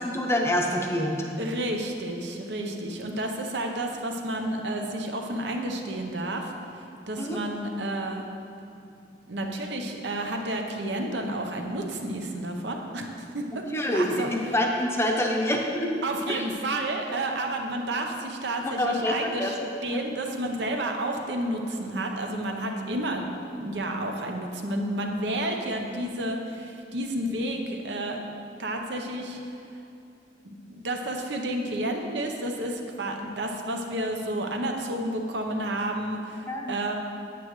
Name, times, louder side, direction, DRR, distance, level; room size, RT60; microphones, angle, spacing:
voice 1, 0.0-1.3 7.2-7.4 13.7-16.4 18.6-19.5 19.9-20.0 20.7-20.8 36.5-36.7, left 1 dB, 15° left, 1 dB, 0.7 m, -26 dB
voice 2, 1.3-8.3 9.3-13.1 13.3-14.5 16.0-19.6 19.8-23.3 23.5-28.2 28.6-29.5 30.7-36.9, right 1 dB, 70° right, 2 dB, 0.8 m, -31 dB
8.5 x 8.4 x 3.1 m, 2.6 s
head